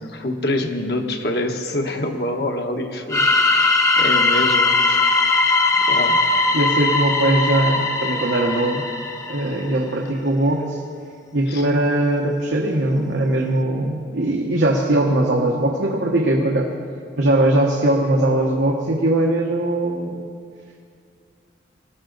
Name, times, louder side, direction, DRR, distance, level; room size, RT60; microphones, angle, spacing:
voice 1, 0.0-5.3 5.7-6.2 11.5-11.7, left 1 dB, 65° left, 4 dB, 1.2 m, -26 dB
sound 1, 3.1-9.8, left 3 dB, 15° left, 0.7 m, -19 dB
voice 2, 6.5-8.9 9.3-10.8 11.3-16.7 17.2-20.3, right 1 dB, 90° right, -1 dB, 1.2 m, -20 dB
20.0 x 13.5 x 4.0 m, 2.3 s
head